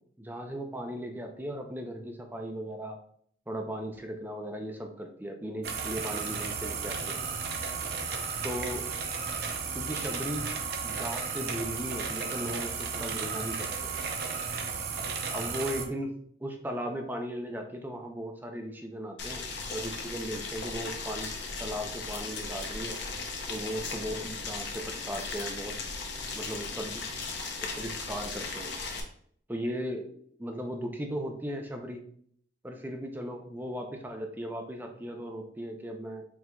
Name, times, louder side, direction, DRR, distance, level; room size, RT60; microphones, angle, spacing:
voice 1, 0.2-3.0 3.5-7.2 8.4-8.9 9.7-10.5 10.8-13.9 15.3-16.1 16.4-23.0 23.5-25.8 26.3-27.1 27.6-28.9 29.5-32.0 32.6-36.3, equal, 10° right, 3 dB, 0.4 m, -37 dB
sound 1, 5.6-15.8, right 5 dB, 55° right, 0.6 m, -34 dB
Boiling, 19.2-29.0, left 4 dB, 60° left, 0.7 m, -37 dB
4.6 x 3.7 x 2.2 m, 0.62 s
head